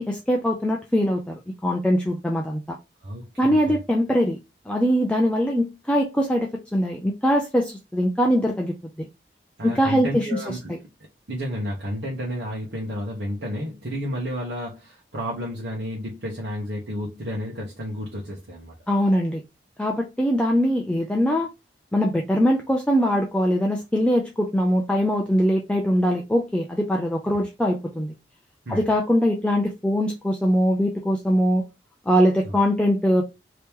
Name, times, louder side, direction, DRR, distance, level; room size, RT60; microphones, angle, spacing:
voice 1, 0.0-2.8 3.4-4.4 4.7-9.1 9.6-10.8 18.9-19.4 19.8-21.5 21.9-28.1 28.7-31.6 32.1-33.2, equal, 5° left, 0.4 m, -22 dB
voice 2, 3.0-3.8 9.6-10.7 11.3-18.7 27.3-27.4 28.7-28.9 32.4-32.5, equal, 75° right, 1.0 m, -31 dB
3.0 x 2.9 x 3.5 m
head